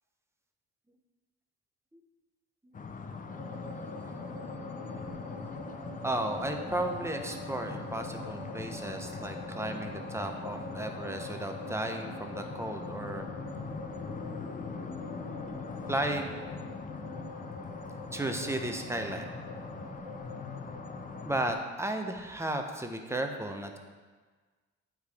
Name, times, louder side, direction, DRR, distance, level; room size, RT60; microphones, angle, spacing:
sound 1, 2.7-21.5, left 5 dB, 25° left, 0.5 m, -42 dB
sound 2, 3.3-21.3, left 1 dB, 45° right, 1.3 m, -45 dB
voice 1, 6.0-13.3 15.9-16.3 18.1-19.2 21.2-23.8, right 1 dB, 10° right, 4 dB, 0.8 m, -34 dB
8.7 x 4.8 x 3.5 m, 1.4 s
cardioid pair, 90°, 30 cm